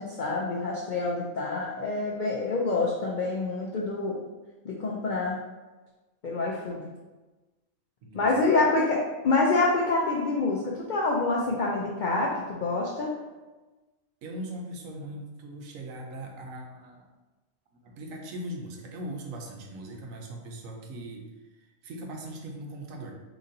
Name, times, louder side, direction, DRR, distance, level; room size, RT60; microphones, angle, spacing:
voice 1, 0.0-4.2 4.6-5.4 6.2-6.8 8.1-13.2, left 3 dB, 75° left, -3 dB, 0.4 m, -27 dB
voice 2, 8.0-8.5 14.2-17.1 17.7-23.1, right 1 dB, 80° right, 1 dB, 1.0 m, -40 dB
3.9 x 2.9 x 2.6 m, 1.2 s
omnidirectional pair, 1.4 m